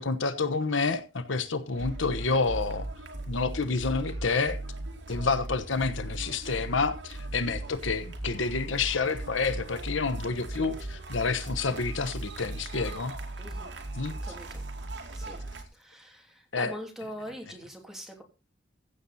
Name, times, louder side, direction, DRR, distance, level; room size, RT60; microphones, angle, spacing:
voice 1, 0.0-2.9 3.3-4.6 5.1-13.2 13.9-14.1 16.5-16.7, left 4 dB, 75° left, 1.1 m, -29 dB
sound 1, 1.7-15.6, right 2 dB, 65° right, 2.3 m, -38 dB
voice 2, 13.4-13.8 14.1-14.7 15.1-15.4 15.7-18.2, equal, ahead, 2.9 m, -43 dB
15.5 x 7.9 x 4.2 m
head